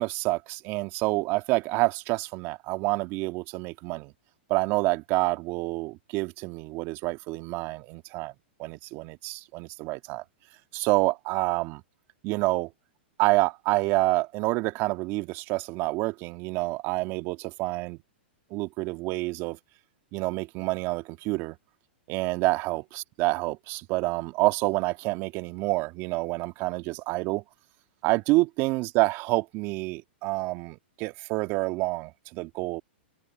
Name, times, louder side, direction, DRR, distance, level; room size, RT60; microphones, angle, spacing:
voice 1, 0.0-4.1 4.5-8.3 8.6-10.2 10.7-11.8 12.2-12.7 13.2-18.0 18.5-19.6 20.1-21.6 22.1-22.8 23.2-27.4 28.0-32.8, right 22 dB, 40° right, 2.0 m, -28 dB
hypercardioid pair, 125°, 6 cm